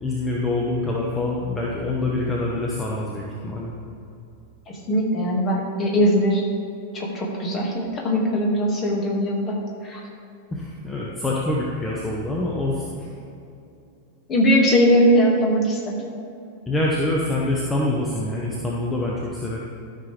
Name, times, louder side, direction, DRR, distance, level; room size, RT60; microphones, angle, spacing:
voice 1, 0.0-3.8 10.5-13.1 16.7-19.6, left 2 dB, 10° left, -3 dB, 1.0 m, -25 dB
voice 2, 4.7-6.4 6.9-9.6 9.8-10.0 14.3-16.0, equal, 30° left, -1 dB, 1.9 m, -20 dB
13.0 x 6.0 x 3.3 m, 2.7 s
figure-of-eight pair, 90°, 0 cm